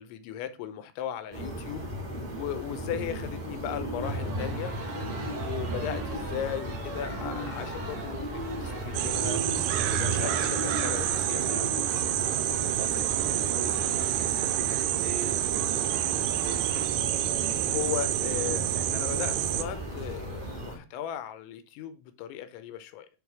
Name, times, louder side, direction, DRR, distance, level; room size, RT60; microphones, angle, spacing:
voice 1, 0.0-1.9 2.3-4.7 5.3-9.4 9.8-11.9 17.6-23.1, left 10 dB, 80° left, 3.1 m, -37 dB
sound 1, 1.3-20.8, right 1 dB, 25° right, 0.9 m, -36 dB
sound 2, 4.0-16.9, right 3 dB, 55° right, 4.1 m, -42 dB
sound 3, 8.9-19.6, right 14 dB, 90° right, 2.3 m, -28 dB
voice 2, 10.2-10.6 12.8-16.9, right 7 dB, 75° right, 2.3 m, -41 dB
8.7 x 3.9 x 4.7 m
omnidirectional pair, 5.3 m